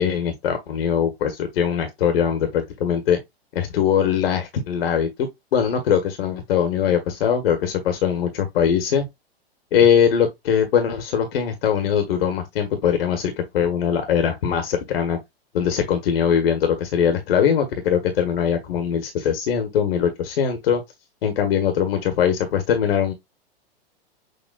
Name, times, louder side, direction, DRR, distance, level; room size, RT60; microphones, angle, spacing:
voice 1, 0.0-3.2 3.5-9.0 9.7-15.2 15.5-20.8 21.2-23.1, left 8 dB, 65° left, 1.3 m, -21 dB
6.6 x 2.9 x 2.3 m
hypercardioid pair, 110°, 31 cm